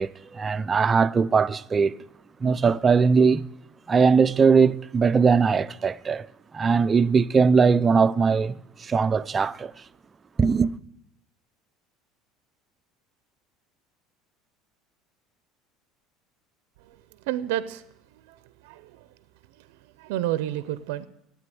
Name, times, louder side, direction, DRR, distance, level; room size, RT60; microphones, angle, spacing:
voice 1, 0.0-2.0 2.4-3.5 3.9-6.3 6.5-9.7 10.4-10.7, right 5 dB, 25° right, 0.4 m, -20 dB
voice 2, 17.3-17.8 18.1-19.1 19.6-21.1, right 13 dB, 85° right, 0.5 m, -31 dB
9.7 x 8.4 x 9.2 m
supercardioid pair, 110°, 0 cm